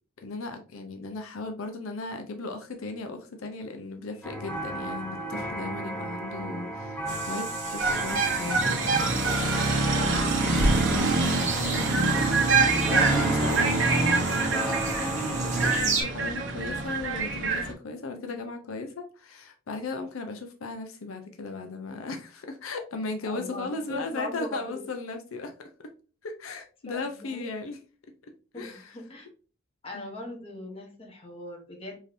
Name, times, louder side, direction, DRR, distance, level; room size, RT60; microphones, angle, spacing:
voice 1, 0.2-8.9 10.6-25.5 26.2-27.8 28.5-29.0 29.9-30.1, left 3 dB, 75° left, 5 dB, 0.6 m, -36 dB
sound 1, 4.2-15.8, right 1 dB, 5° left, 0.6 m, -34 dB
sound 2, 7.1-16.0, right 2 dB, 35° right, 1.1 m, -34 dB
sound 3, 7.8-17.7, right 3 dB, 60° right, 0.8 m, -25 dB
voice 2, 10.0-10.8 13.0-13.7 23.2-24.9 26.9-27.5 28.5-29.3 29.8-32.0, left 1 dB, 25° left, 1 dB, 0.9 m, -40 dB
4.9 x 2.7 x 2.5 m, 0.38 s
head